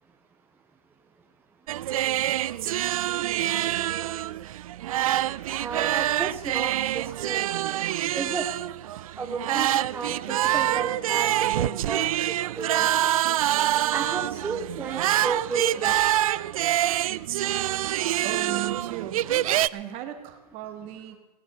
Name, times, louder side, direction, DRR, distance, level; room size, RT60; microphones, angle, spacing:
sound 1, 1.7-19.7, right 13 dB, 60° right, 0.4 m, -26 dB
voice 1, 5.6-7.5 8.1-8.4 9.2-12.9 13.9-16.0, right 4 dB, 10° right, 3 dB, 0.8 m, -33 dB
voice 2, 18.2-19.2 19.7-21.2, right 10 dB, 35° right, 8 dB, 1.5 m, -36 dB
17.5 x 9.7 x 6.3 m, 1.2 s
hypercardioid pair, 130°, 20 cm